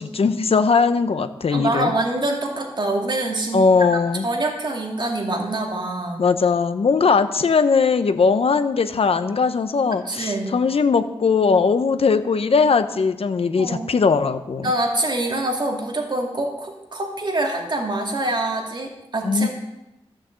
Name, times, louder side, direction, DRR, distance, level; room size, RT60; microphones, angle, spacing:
voice 1, 0.0-1.9 3.5-4.3 6.2-14.7 19.2-19.5, left 5 dB, 65° left, 10 dB, 0.8 m, -19 dB
voice 2, 1.5-3.7 3.9-6.2 10.1-10.5 13.6-13.9 14.6-19.5, right 2 dB, 45° right, 0 dB, 2.3 m, -25 dB
14.0 x 6.5 x 7.7 m, 0.92 s
wide cardioid pair, 115°, 10 cm